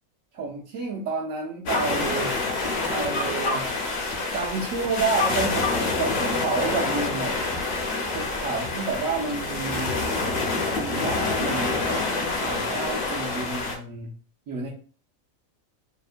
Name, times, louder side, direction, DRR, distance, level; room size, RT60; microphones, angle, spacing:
voice 1, 0.3-2.3 2.9-3.7 4.1-7.4 8.1-10.1 10.8-11.8 12.3-14.1 14.5-14.7, right 4 dB, 75° right, -3 dB, 1.0 m, -30 dB
sound 1, 1.7-13.8, left 3 dB, 60° left, 0.7 m, -27 dB
2.8 x 2.1 x 2.4 m, 0.39 s
omnidirectional pair, 1.4 m